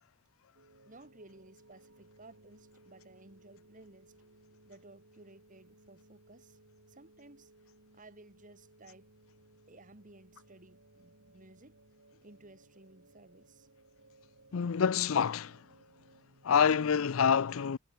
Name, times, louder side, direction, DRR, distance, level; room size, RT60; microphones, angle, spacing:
sound 1, 0.5-16.9, right 2 dB, 85° right, 6.5 m, -62 dB
voice 1, 0.8-4.1 4.6-6.6 6.9-7.5 7.9-9.1 9.7-11.8 12.2-13.7, right 2 dB, 40° right, 3.0 m, -56 dB
voice 2, 14.5-15.6 16.4-17.8, left 7 dB, 80° left, 0.5 m, -27 dB
head